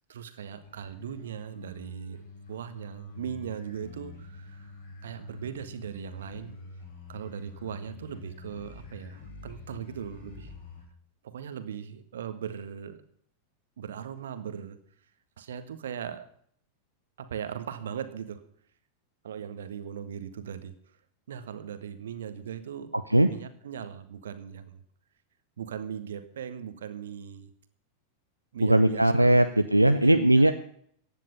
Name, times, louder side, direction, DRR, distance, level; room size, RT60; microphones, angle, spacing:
voice 1, 0.1-2.2 2.5-4.7 5.0-6.6 7.1-10.5 11.2-13.0 13.8-14.8 15.4-16.3 17.2-18.5 19.2-20.7 21.3-22.9 23.2-24.8 25.6-27.5 28.5-29.6 30.0-30.5, right 8 dB, 65° right, 11 dB, 1.6 m, -39 dB
sound 1, 0.6-10.8, left 3 dB, 65° left, 6.7 m, -46 dB
voice 2, 22.9-23.3 28.6-30.5, right 1 dB, 85° right, 8 dB, 0.7 m, -20 dB
15.5 x 10.0 x 5.6 m, 0.63 s
figure-of-eight pair, 90°, 0 cm